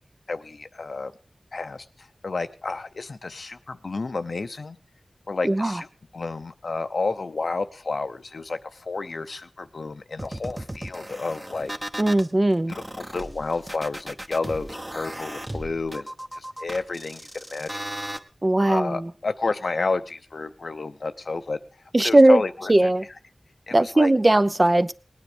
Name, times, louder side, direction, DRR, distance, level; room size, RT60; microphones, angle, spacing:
voice 1, 0.3-1.1 1.5-4.8 5.3-5.9 6.1-11.7 12.7-17.8 18.7-21.6 22.0-22.7 23.7-24.1, left 3 dB, 85° left, 9 dB, 0.7 m, -30 dB
voice 2, 5.4-5.8 12.0-12.7 18.4-19.1 21.9-22.4 22.7-23.1 23.7-24.9, right 1 dB, 35° right, 12 dB, 0.7 m, -18 dB
sound 1, 10.2-12.3 12.7-18.2, right 1 dB, 20° right, 1.1 m, -36 dB
19.0 x 9.6 x 5.1 m, 0.38 s
wide cardioid pair, 55°, 0 cm